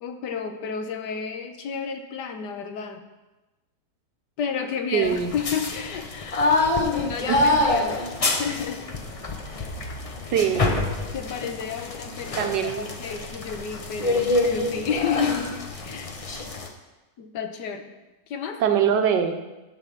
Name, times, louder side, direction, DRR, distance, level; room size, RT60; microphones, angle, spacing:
voice 1, 0.0-3.0 4.4-6.5 6.9-8.9 9.5-9.8 11.1-12.4 12.7-15.6 15.8-16.1 17.2-17.9 18.3-18.6, left 6 dB, 85° left, 6 dB, 1.4 m, -31 dB
voice 2, 4.9-5.3 7.3-7.4 10.3-10.9 12.4-12.9 18.6-19.4, right 8 dB, 85° right, 6 dB, 1.5 m, -23 dB
sound 1, 5.0-16.7, left 2 dB, 35° left, 0.5 m, -26 dB
11.5 x 4.1 x 6.9 m, 1.1 s
omnidirectional pair, 1.8 m